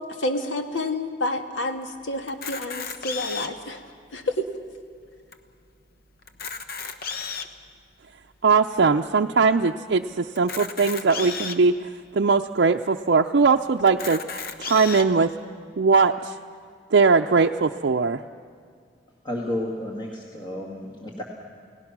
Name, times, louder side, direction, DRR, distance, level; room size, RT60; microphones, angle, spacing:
voice 1, 0.0-3.8 4.1-4.4, left 1 dB, 90° left, 6 dB, 1.7 m, -29 dB
Camera, 2.3-3.7 4.3-4.4 4.6-4.8 5.3-5.4 6.2-7.6 8.2-8.3 10.3-11.6 12.3-12.4 12.7-12.8 13.9-15.0, left 5 dB, 55° left, 1.2 m, -33 dB
voice 2, 8.4-11.7 12.1-14.2 14.6-15.3 15.8-16.3 16.9-18.2, right 4 dB, 60° right, 2 dB, 0.5 m, -20 dB
voice 3, 19.2-21.2, left 1 dB, 25° left, -1 dB, 2.1 m, -31 dB
29.5 x 18.0 x 6.1 m, 2.2 s
head